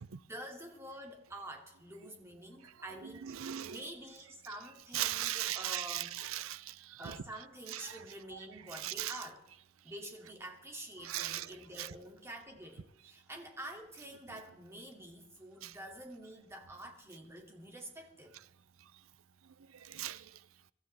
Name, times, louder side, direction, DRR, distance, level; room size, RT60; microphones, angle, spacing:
voice 1, 0.2-6.1 7.0-9.4 9.8-18.4, right 1 dB, 10° right, 2.5 m, -48 dB
voice 2, 3.0-3.8 4.9-7.2 7.7-8.0 8.3-8.4 8.7-9.2 11.0-11.5 11.8-12.0 15.6-15.8 19.7-20.4, right 12 dB, 85° right, 0.5 m, -39 dB
24.0 x 14.0 x 3.4 m
head